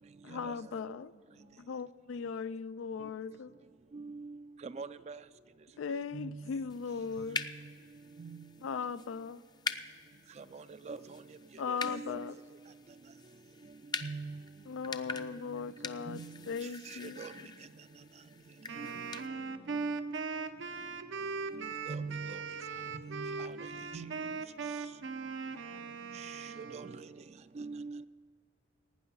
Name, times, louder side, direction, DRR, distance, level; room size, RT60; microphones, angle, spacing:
voice 1, 0.2-1.1 1.6-3.5 5.8-7.4 8.6-9.4 11.6-12.4 14.7-16.2 16.5-17.2, left 5 dB, 90° left, 0.3 m, -38 dB
voice 2, 1.1-1.6 10.1-10.9 16.9-17.7 19.4-20.0 23.8-24.5, right 1 dB, 45° left, 0.8 m, -63 dB
voice 3, 3.9-4.3 4.6-5.2 6.1-6.4 8.2-8.4 10.5-11.0 11.7-12.2 14.0-14.4 16.1-16.3 17.2-17.3 18.8-18.9 19.7-20.2 21.5-22.4 23.0-23.5 23.9-24.1 26.7-26.9 27.6-28.0, right 4 dB, 35° right, 0.3 m, -41 dB
sound 1, 6.7-19.3, left 4 dB, 20° left, 0.5 m, -44 dB
Wind instrument woodwind instrument, 18.7-27.1, right 5 dB, 80° right, 0.7 m, -40 dB
17.5 x 9.4 x 5.4 m
head